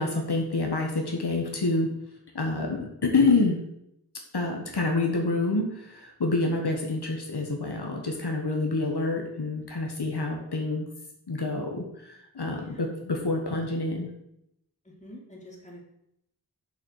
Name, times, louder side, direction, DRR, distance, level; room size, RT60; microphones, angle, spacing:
voice 1, 0.0-1.9 2.3-3.6 4.3-10.8 11.3-14.1, left 3 dB, 75° left, 1 dB, 1.5 m, -27 dB
voice 2, 12.6-13.0 15.0-15.8, left 1 dB, 15° left, -2 dB, 2.9 m, -46 dB
7.1 x 5.9 x 6.4 m, 0.79 s
wide cardioid pair, 50°, 40 cm